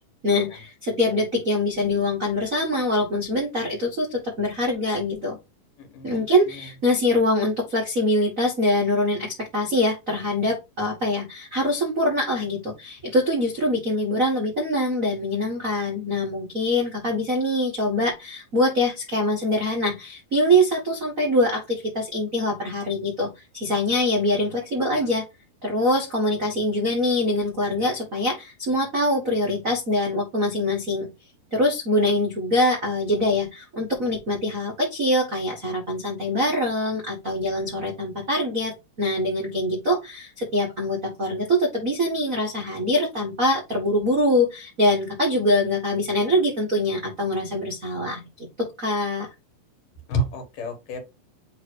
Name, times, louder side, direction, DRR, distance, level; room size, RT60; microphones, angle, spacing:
voice 1, 0.2-5.4 6.0-25.2 25.6-31.1 31.5-49.3, left 1 dB, 45° right, 1.0 m, -24 dB
voice 2, 5.8-6.7 50.1-51.0, right 1 dB, 60° left, 2.9 m, -30 dB
7.7 x 3.1 x 4.7 m
omnidirectional pair, 4.5 m